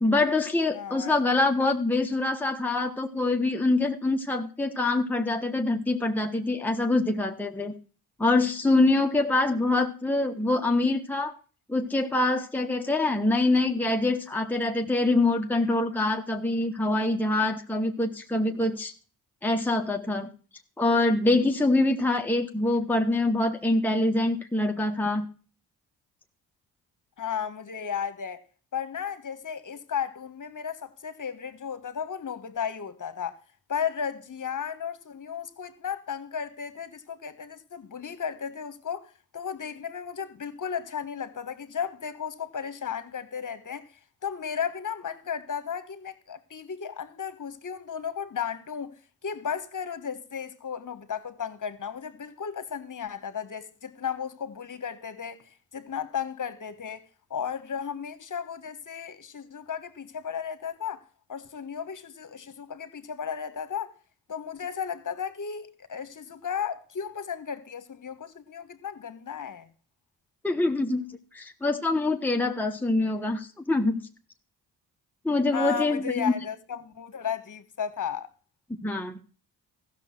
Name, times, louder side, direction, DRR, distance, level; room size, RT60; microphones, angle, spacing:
voice 1, 0.0-7.7 8.2-11.3 11.7-18.9 19.4-20.3 20.8-25.3 70.4-74.0 75.2-76.3 78.7-79.2, left 2 dB, 5° left, 1.3 m, -25 dB
voice 2, 0.7-1.1 27.2-28.4 28.7-33.4 33.7-43.9 44.2-57.0 57.3-63.9 64.3-69.7 75.5-78.3, left 7 dB, 45° left, 1.5 m, -34 dB
14.5 x 6.6 x 5.9 m
supercardioid pair, 50°, 43 cm